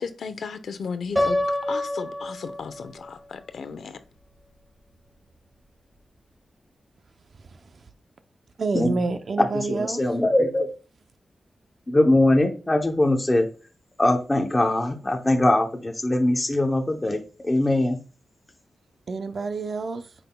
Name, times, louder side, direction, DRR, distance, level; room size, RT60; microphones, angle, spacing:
voice 1, 0.0-4.0, left 5 dB, 85° left, 0.8 m, -35 dB
Piano, 1.2-3.1, left 1 dB, 5° right, 1.8 m, -26 dB
voice 2, 7.4-7.9 8.6-10.0 19.1-20.1, right 4 dB, 50° right, 0.6 m, -28 dB
voice 3, 9.4-10.7 11.9-13.5 14.0-18.0, left 1 dB, 15° left, 0.8 m, -21 dB
9.6 x 5.7 x 2.3 m
wide cardioid pair, 160°, 0 cm